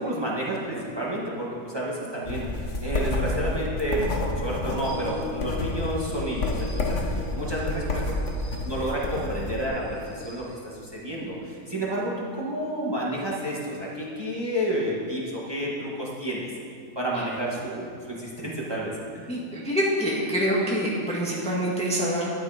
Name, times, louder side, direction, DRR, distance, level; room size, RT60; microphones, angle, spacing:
voice 1, 0.0-8.0 8.6-12.1 12.4-16.5 17.0-19.2, right 1 dB, 15° right, -5 dB, 1.7 m, -30 dB
sound 1, 2.2-9.7, left 2 dB, 55° left, 1.5 m, -29 dB
sound 2, 4.8-10.9, left 3 dB, 25° left, 2.9 m, -40 dB
voice 2, 7.7-8.1 17.1-17.2 19.3-22.3, equal, 5° left, -5 dB, 1.5 m, -26 dB
12.0 x 9.7 x 5.1 m, 2.4 s
omnidirectional pair, 1.5 m